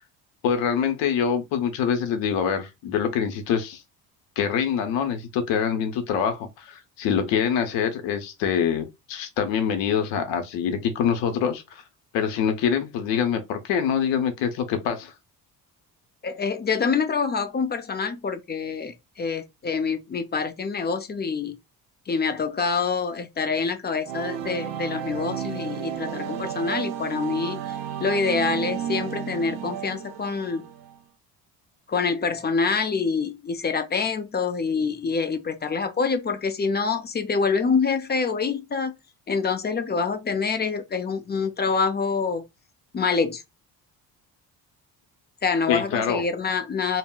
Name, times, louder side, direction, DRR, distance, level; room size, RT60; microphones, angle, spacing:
voice 1, 0.4-3.8 4.4-11.8 12.1-15.1 45.7-46.2, left 7 dB, 75° left, 0.7 m, -25 dB
voice 2, 16.2-21.6 22.1-30.6 31.9-38.9 39.3-42.4 42.9-43.4 45.4-47.0, left 5 dB, 25° left, 0.4 m, -26 dB
sound 1, 24.0-30.9, right 9 dB, 70° right, 0.5 m, -32 dB
2.1 x 2.0 x 3.6 m
supercardioid pair, 60°, 45 cm